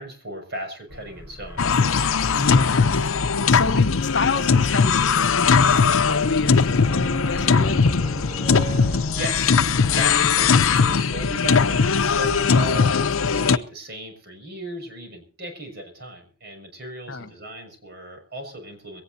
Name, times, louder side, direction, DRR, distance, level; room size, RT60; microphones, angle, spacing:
voice 1, 0.0-1.7 9.1-13.0 13.3-19.0, right 1 dB, 50° right, 6.2 m, -36 dB
sound 1, 0.9-12.5, equal, 10° right, 6.0 m, -41 dB
sound 2, 1.6-13.6, left 5 dB, 80° left, 0.7 m, -19 dB
voice 2, 2.3-2.9 3.5-7.8 17.1-17.3, left 3 dB, 60° left, 1.1 m, -28 dB
sound 3, 6.7-10.9, right 3 dB, 10° left, 7.4 m, -38 dB
22.5 x 18.0 x 2.7 m
head